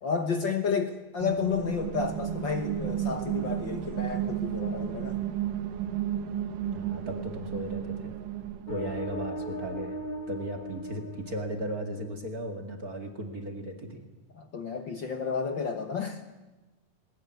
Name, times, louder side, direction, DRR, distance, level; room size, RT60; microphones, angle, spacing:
voice 1, 0.0-5.2 14.4-16.2, left 5 dB, 55° left, 6 dB, 1.3 m, -31 dB
sound 1, 1.2-9.0, right 10 dB, 80° right, 2.8 m, -33 dB
voice 2, 6.7-8.1 8.7-10.0 10.3-14.0, right 1 dB, 30° right, 4 dB, 2.1 m, -36 dB
sound 2, 8.7-12.2, equal, 30° left, 1.0 m, -38 dB
20.5 x 20.0 x 9.5 m, 1.1 s
omnidirectional pair, 3.8 m